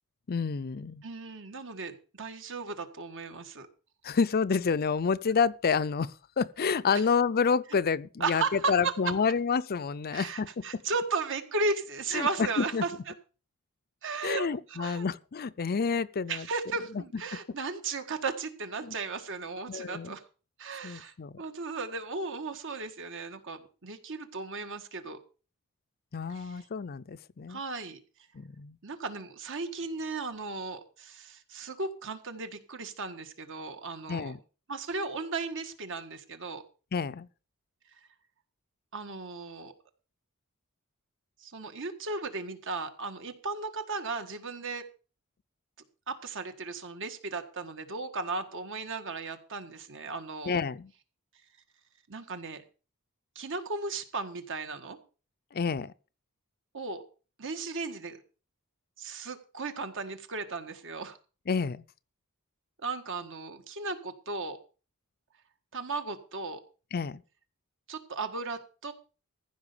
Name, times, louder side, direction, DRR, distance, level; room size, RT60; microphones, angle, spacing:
voice 1, 0.3-1.0 4.0-10.5 12.1-12.8 14.2-16.5 18.8-18.9 19.7-20.1 20.8-21.4 26.1-27.6 28.3-28.8 34.1-34.4 36.9-37.3 50.5-50.9 55.5-55.9 61.5-61.8 66.9-67.2, left 5 dB, 45° left, 0.5 m, -29 dB
voice 2, 1.0-3.7 7.7-7.8 8.2-9.1 10.1-13.1 14.0-15.1 16.3-20.2 20.6-25.2 26.3-26.6 27.5-28.0 28.8-34.3 34.7-36.6 38.9-39.7 41.4-44.9 46.1-50.6 52.1-52.6 53.4-55.0 56.7-57.0 57.4-58.2 59.0-61.2 62.8-64.6 65.7-66.6 67.9-68.9, right 3 dB, 60° right, 1.7 m, -35 dB
15.0 x 5.6 x 6.8 m
head